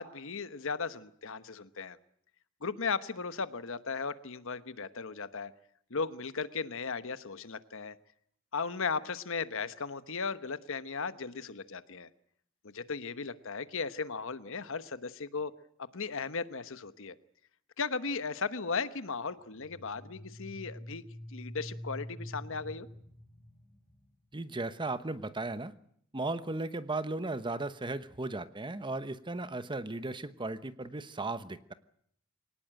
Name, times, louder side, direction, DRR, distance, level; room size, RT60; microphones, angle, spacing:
voice 1, 0.0-2.0 2.6-5.5 5.9-8.0 8.5-12.1 12.6-15.5 15.8-17.1 17.8-21.0 21.3-22.9, left 5 dB, 65° left, 13 dB, 1.1 m, -36 dB
sound 1, 19.4-24.2, equal, 10° left, 6.6 m, -46 dB
voice 2, 24.3-25.7 26.1-31.7, right 2 dB, 20° right, 13 dB, 1.0 m, -36 dB
23.0 x 18.5 x 9.0 m, 0.68 s
head